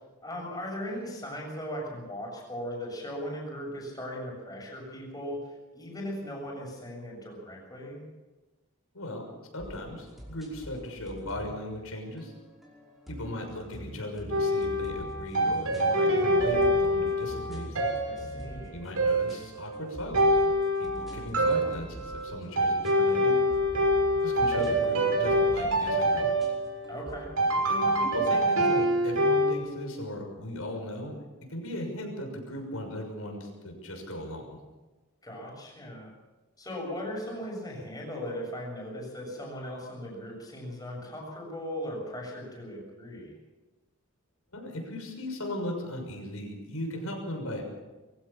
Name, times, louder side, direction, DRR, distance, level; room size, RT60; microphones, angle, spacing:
voice 1, 0.2-8.0 18.1-18.8 26.9-27.3 35.2-36.1 36.6-43.3, equal, 15° left, -1 dB, 7.2 m, -38 dB
voice 2, 8.9-12.3 13.1-17.8 18.7-20.5 20.8-23.4 24.2-26.3 27.7-31.1 31.5-34.6 44.5-47.6, left 1 dB, 80° left, 2 dB, 6.5 m, -37 dB
sound 1, 9.6-27.2, equal, ahead, 5.3 m, -46 dB
sound 2, 14.3-29.5, equal, 90° right, 5.7 m, -26 dB
23.5 x 16.0 x 7.3 m, 1.2 s
head